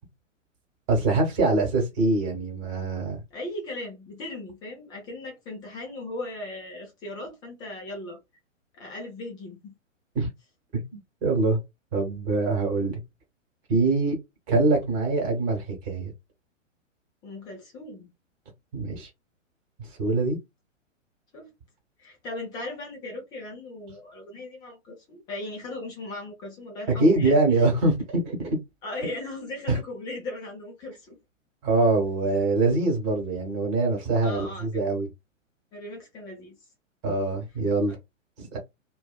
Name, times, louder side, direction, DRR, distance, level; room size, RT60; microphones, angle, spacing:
voice 1, 0.9-3.2 10.1-10.3 10.9-11.6 11.9-13.0 13.7-14.2 14.5-16.1 18.7-19.1 20.0-20.4 27.0-28.6 29.7-29.8 31.6-35.1 37.0-38.0 38.4-38.6, right 2 dB, 25° right, 1.3 m, -24 dB
voice 2, 3.3-8.2 8.7-9.7 17.2-18.1 21.3-21.5 22.0-27.7 28.8-31.2 34.2-34.8 35.7-36.5, left 2 dB, 10° left, 0.5 m, -38 dB
2.6 x 2.3 x 2.3 m
figure-of-eight pair, 120°, 39 cm